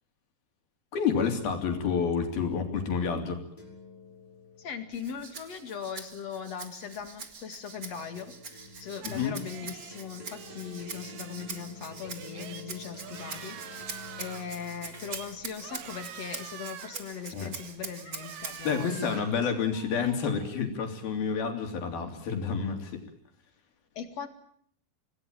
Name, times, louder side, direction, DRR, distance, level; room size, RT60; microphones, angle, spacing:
voice 1, 0.9-3.4 9.0-9.4 17.3-17.5 18.6-23.0, left 6 dB, 75° left, 4 dB, 5.1 m, -29 dB
sound 1, 3.6-6.6 7.8-18.2, left 3 dB, 10° left, 5.3 m, -51 dB
voice 2, 4.6-13.8 14.2-19.2 23.9-24.3, left 7 dB, 50° left, 8 dB, 2.8 m, -39 dB
Rattle (instrument), 4.9-18.8, right 5 dB, 35° right, 1.4 m, -44 dB
sound 2, 9.0-22.9, right 9 dB, 85° right, 3.7 m, -48 dB
26.5 x 18.0 x 9.1 m, 0.64 s
omnidirectional pair, 4.4 m